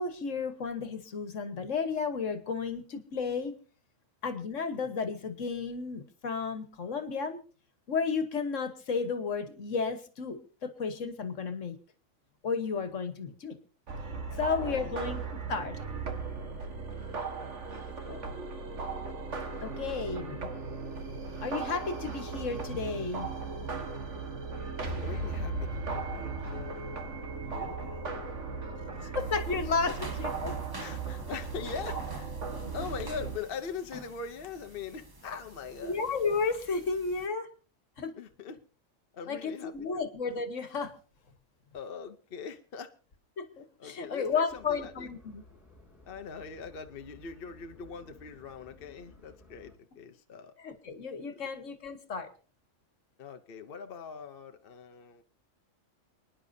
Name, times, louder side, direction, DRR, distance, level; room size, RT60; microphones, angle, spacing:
voice 1, 0.0-3.6 4.2-7.4 7.9-11.8 12.4-13.6 14.4-15.2 15.5-15.8 19.6-20.5 21.4-23.3 29.1-29.9 30.2-30.5 32.5-32.7 35.8-37.5 38.0-38.1 39.3-40.9 43.4-45.4 50.6-52.3, left 5 dB, 70° left, 10 dB, 1.6 m, -33 dB
sound 1, 13.9-33.4, right 4 dB, 65° right, 1.9 m, -37 dB
voice 2, 14.3-15.0 17.5-17.6 17.8-18.2 24.8-28.3 29.0-29.1 29.9-30.1 30.8-32.3 32.7-36.0 38.1-38.6 39.1-40.0 41.7-42.9 43.8-45.1 46.1-50.5 53.2-55.2, left 6 dB, 50° left, 6 dB, 0.9 m, -42 dB
sound 2, 29.2-37.3, right 2 dB, 20° right, 1.1 m, -48 dB
sound 3, 44.5-49.7, left 2 dB, 10° left, 5.0 m, -56 dB
29.5 x 10.0 x 2.7 m, 0.38 s
omnidirectional pair, 1.4 m